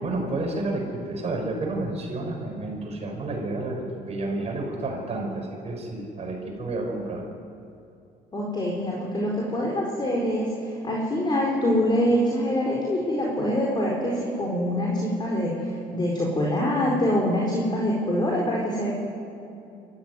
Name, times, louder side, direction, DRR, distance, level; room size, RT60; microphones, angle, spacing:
voice 1, 0.0-7.2, right 2 dB, 40° right, 0 dB, 5.9 m, -30 dB
voice 2, 8.3-18.9, equal, 25° left, -3 dB, 4.5 m, -25 dB
25.0 x 14.5 x 9.6 m, 2.7 s
cardioid pair, 110°, 17 cm